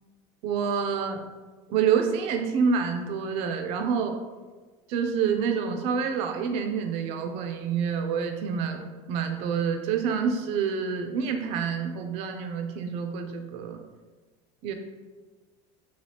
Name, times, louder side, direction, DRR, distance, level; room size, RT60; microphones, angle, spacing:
voice 1, 0.4-1.2 1.7-4.2 4.9-13.8 14.6-14.7, right 6 dB, 45° right, 5 dB, 0.4 m, -27 dB
3.2 x 2.3 x 2.7 m, 1.3 s
cardioid pair, 170°, 14 cm